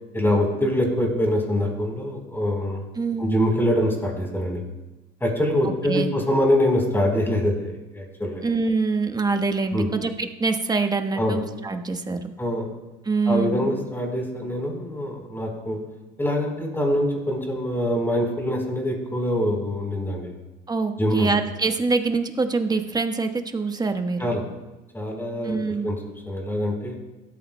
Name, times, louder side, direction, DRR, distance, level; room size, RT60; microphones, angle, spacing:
voice 1, 0.1-2.8 3.2-4.6 5.2-8.4 9.7-9.9 11.2-11.4 12.4-12.7 13.3-15.8 16.2-20.3 21.0-21.3 24.2-24.5 24.9-25.6 25.8-26.0 26.3-27.0, equal, 10° left, 1 dB, 3.9 m, -24 dB
voice 2, 2.9-3.4 5.6-6.1 8.4-12.3 13.0-13.7 20.7-24.2 25.4-25.9, right 4 dB, 20° right, 6 dB, 1.2 m, -25 dB
17.5 x 13.5 x 2.2 m, 1.1 s
supercardioid pair, 100°, 21 cm